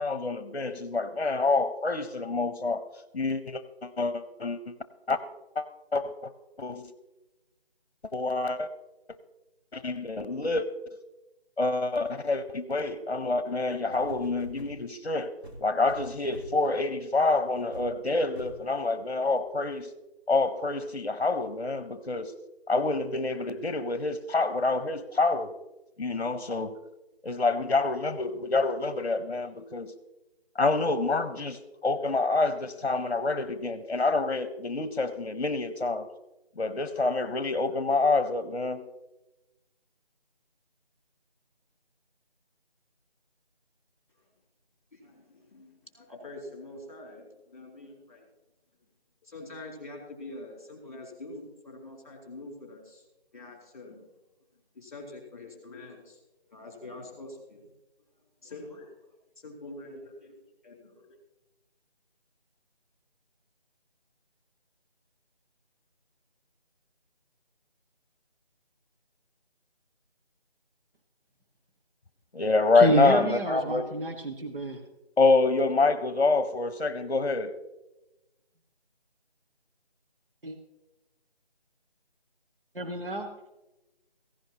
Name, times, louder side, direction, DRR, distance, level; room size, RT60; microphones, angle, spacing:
voice 1, 0.0-2.8 3.1-4.7 5.1-5.2 5.6-5.7 5.9-6.3 6.6-6.9 8.1-8.7 9.7-11.0 11.6-19.9 20.3-22.3 22.7-25.5 26.0-26.8 27.2-29.9 30.5-36.1 36.6-38.8 72.3-73.9 75.2-77.5, left 3 dB, 60° left, 12 dB, 0.9 m, -27 dB
sound 1, 13.4-13.5 13.9-14.8 15.4-16.7 17.2-17.4 17.7-18.0 18.4-18.7 19.4-19.5, right 1 dB, 85° right, 2.9 m, -45 dB
voice 2, 44.9-48.3 49.2-53.0 53.3-54.0 54.7-56.2 56.5-57.7 58.4-59.0 59.4-60.4 60.6-61.2, left 2 dB, 30° left, 0 dB, 3.4 m, -45 dB
voice 3, 72.7-74.8 80.4-80.6 82.7-83.3, right 2 dB, 55° right, 4 dB, 1.6 m, -29 dB
16.5 x 15.5 x 2.9 m, 0.99 s
figure-of-eight pair, 180°, 32 cm